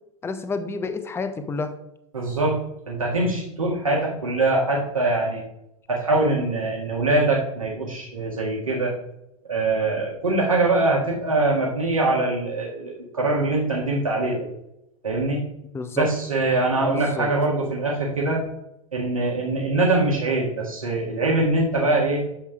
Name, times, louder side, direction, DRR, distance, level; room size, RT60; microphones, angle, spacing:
voice 1, 0.2-1.8 15.7-16.1 16.8-17.3, left 4 dB, 15° left, 10 dB, 0.7 m, -29 dB
voice 2, 2.1-2.6 2.9-5.4 5.9-8.9 9.5-14.4 15.0-15.4 16.0-18.4 18.9-22.2, right 2 dB, 80° right, -4 dB, 1.8 m, -23 dB
9.6 x 7.2 x 2.3 m, 0.82 s
figure-of-eight pair, 85°, 17 cm